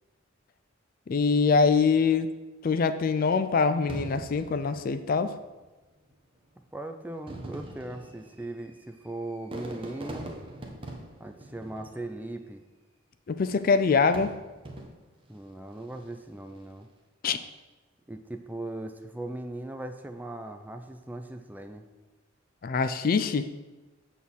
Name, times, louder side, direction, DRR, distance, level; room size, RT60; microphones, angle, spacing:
voice 1, 1.1-2.3 2.6-5.3 13.3-14.3 17.2-17.4 22.6-23.5, left 5 dB, 45° left, 11 dB, 0.4 m, -24 dB
Fireworks, 3.9-5.5 6.4-6.5 7.1-12.4 13.5-15.3 15.8-16.3, right 1 dB, 25° right, 1.0 m, -42 dB
voice 2, 6.7-10.3 11.2-12.6 15.3-16.9 18.1-21.9, right 1 dB, 10° right, 6 dB, 0.5 m, -39 dB
7.7 x 4.2 x 7.0 m, 1.2 s
head